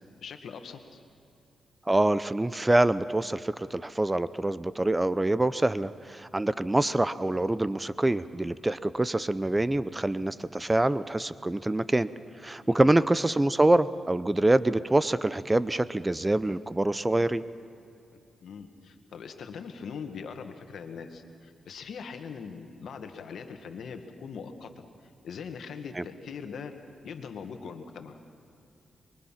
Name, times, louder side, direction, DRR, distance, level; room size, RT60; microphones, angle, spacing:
voice 1, 0.2-1.0 12.8-12.9 18.1-24.8 25.2-26.7 27.0-28.2, left 6 dB, 80° left, 6 dB, 1.7 m, -41 dB
voice 2, 1.9-12.1 12.4-17.4 26.0-26.1, right 1 dB, 20° right, 15 dB, 0.7 m, -25 dB
25.0 x 23.0 x 5.8 m, 2.7 s
cardioid pair, 65°, 0 cm